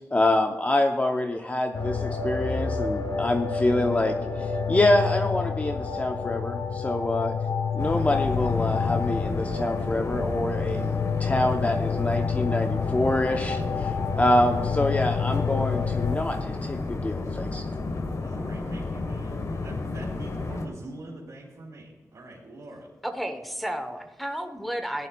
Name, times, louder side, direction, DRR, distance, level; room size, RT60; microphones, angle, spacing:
voice 1, 0.0-7.3 7.7-17.6, left 1 dB, 25° left, 4 dB, 0.7 m, -26 dB
sound 1, 1.7-16.2, left 5 dB, 80° left, 1.0 m, -29 dB
sound 2, 7.8-20.7, left 3 dB, 55° left, 1.2 m, -32 dB
voice 2, 18.2-22.8, right 2 dB, 75° right, -6 dB, 2.7 m, -44 dB
voice 3, 23.0-25.1, equal, ahead, 5 dB, 0.9 m, -32 dB
15.5 x 11.0 x 2.3 m, 1.3 s
wide cardioid pair, 85°, 6 cm